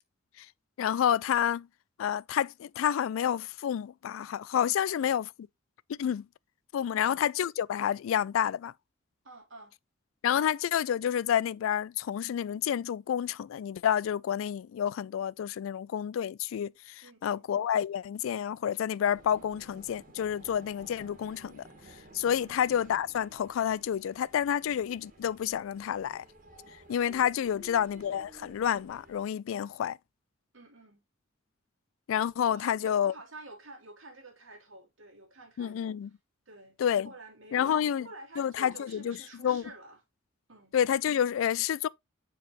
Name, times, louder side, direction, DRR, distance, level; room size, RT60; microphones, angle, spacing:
voice 1, 0.8-1.7 2.0-5.3 5.9-6.3 6.7-8.7 10.2-21.6 22.1-26.2 26.9-30.0 32.1-33.1 35.6-36.1 36.8-37.1 37.5-38.1 38.4-39.7 40.7-41.9, left 9 dB, 85° left, 0.3 m, -29 dB
voice 2, 9.2-9.7 17.0-17.5 22.5-22.6 27.4-27.9 30.5-31.0 32.5-36.0 36.5-36.8 37.0-40.0 40.5-40.7, right 2 dB, 85° right, 2.4 m, -50 dB
sound 1, 19.1-29.3, right 2 dB, 45° right, 1.7 m, -54 dB
7.4 x 4.7 x 3.0 m
head